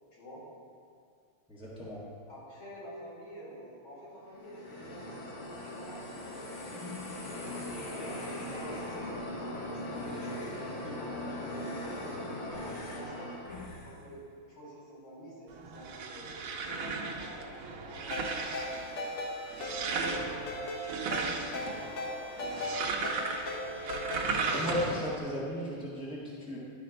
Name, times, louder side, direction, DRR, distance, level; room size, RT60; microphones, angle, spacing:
voice 1, 0.1-0.4 2.3-9.2 9.5-12.1 12.5-13.3 13.7-18.9 19.9-20.7 21.1-22.3, equal, 85° left, -6 dB, 3.2 m, -48 dB
voice 2, 1.5-2.0 24.4-26.6, equal, 5° right, -7 dB, 1.3 m, -36 dB
sound 1, 4.3-14.0, left 1 dB, 40° left, 1.4 m, -40 dB
sound 2, 15.5-25.2, right 4 dB, 85° right, 1.7 m, -36 dB
Ringtone, 18.1-25.0, left 1 dB, 65° left, 1.7 m, -38 dB
11.5 x 4.2 x 5.1 m, 2.3 s
omnidirectional pair, 2.2 m